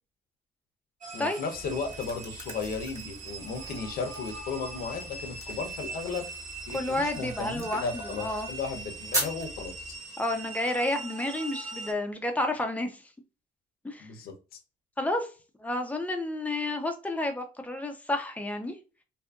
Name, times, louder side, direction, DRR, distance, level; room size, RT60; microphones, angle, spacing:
sound 1, 1.0-11.9, right 3 dB, 45° right, 0.8 m, -41 dB
voice 1, 1.1-6.3 6.7-9.9 14.0-14.6, left 4 dB, 65° left, 5 dB, 0.7 m, -35 dB
sound 2, 1.5-10.0, right 1 dB, 20° right, 1.1 m, -40 dB
voice 2, 6.7-8.5 10.2-13.0 13.8-14.1 15.0-15.3 15.6-18.8, left 1 dB, 10° left, 5 dB, 0.5 m, -30 dB
2.6 x 2.5 x 2.3 m, 0.33 s
cardioid pair, 110°, 17 cm